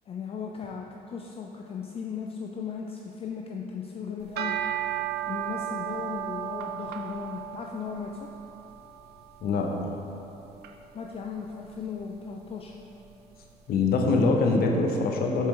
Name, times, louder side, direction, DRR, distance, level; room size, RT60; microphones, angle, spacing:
voice 1, 0.1-4.5 5.3-8.3 10.9-12.7, left 6 dB, 35° left, 0 dB, 0.4 m, -37 dB
sound 1, 4.2-13.6, right 10 dB, 70° right, 0.5 m, -36 dB
voice 2, 9.4-9.9 13.7-15.5, left 3 dB, 65° left, 1 dB, 0.9 m, -24 dB
7.2 x 4.5 x 3.7 m, 2.8 s
cardioid pair, 110°, 17 cm